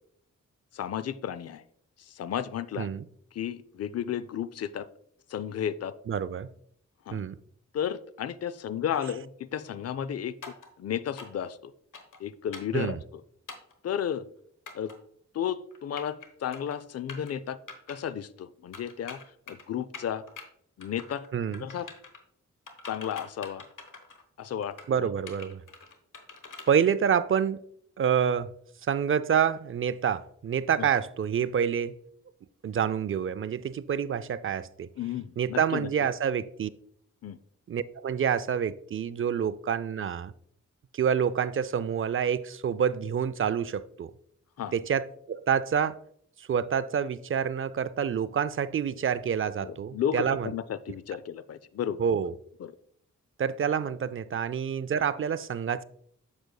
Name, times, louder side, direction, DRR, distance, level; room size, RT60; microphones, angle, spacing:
voice 1, 0.7-1.6 2.1-2.9 3.3-4.9 5.3-5.9 7.1-7.2 7.7-10.4 10.8-11.7 12.2-13.0 13.8-14.3 14.7-14.9 15.3-17.6 17.9-19.2 19.5-20.2 20.8-21.2 21.6-21.9 22.8-23.7 24.4-25.1 30.8-30.9 35.0-35.9 37.2-37.4 44.6-44.7 49.6-52.0 52.6-52.7, left 9 dB, 50° left, 0.5 m, -33 dB
voice 2, 6.1-6.5 7.1-7.4 12.7-13.0 21.3-21.7 24.9-25.6 26.7-27.6 28.0-28.5 28.9-32.0 32.6-34.9 35.4-36.7 37.7-40.3 40.9-44.1 44.7-46.0 46.5-50.5 52.0-52.3 53.4-55.8, right 8 dB, 40° right, 0.4 m, -27 dB
sound 1, 10.4-10.7 11.2-11.5 11.9-12.2 12.5-12.8 13.5-13.7 14.7-14.9 15.7-16.3 16.5-16.8 17.1-17.3 17.7-18.0 18.7-19.6 19.9-20.4 20.8-21.3 21.5-22.2 22.7-24.2 24.6-24.9 25.3-26.7, left 4 dB, 75° left, 1.2 m, -44 dB
7.6 x 6.7 x 2.3 m
cardioid pair, 55°, 32 cm